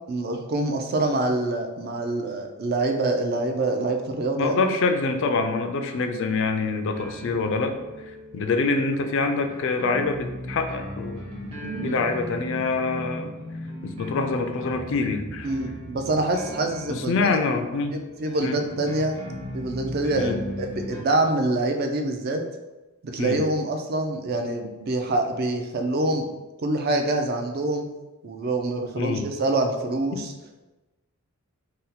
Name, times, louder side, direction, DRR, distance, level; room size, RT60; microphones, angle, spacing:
voice 1, 0.1-4.6 11.6-12.0 15.4-17.3 17.9-19.2 19.5-22.4 23.0-26.3 26.6-27.9 28.2-30.3, right 2 dB, 45° right, 5 dB, 0.3 m, -26 dB
voice 2, 4.4-7.7 8.3-11.2 11.5-13.3 13.8-15.5 17.1-18.0 18.4-18.6 20.2-20.4 23.2-23.4 29.0-29.3, left 3 dB, 60° left, 6 dB, 0.3 m, -25 dB
sound 1, 6.9-21.0, left 1 dB, 25° right, 0.7 m, -38 dB
2.7 x 2.1 x 4.0 m, 1.1 s
head